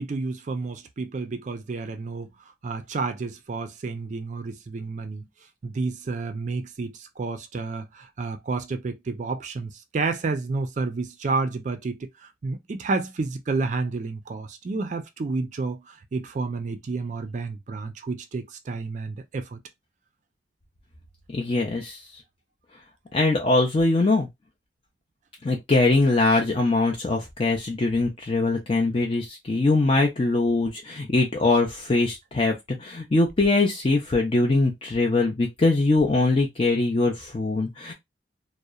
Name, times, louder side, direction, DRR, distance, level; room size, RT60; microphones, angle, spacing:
voice 1, 0.0-2.3 2.6-5.3 5.6-19.6, right 3 dB, 45° right, 0.4 m, -30 dB
voice 2, 21.3-22.0 23.1-24.3 25.4-32.5 32.8-37.9, left 2 dB, 30° left, 0.4 m, -22 dB
2.8 x 2.0 x 2.3 m
head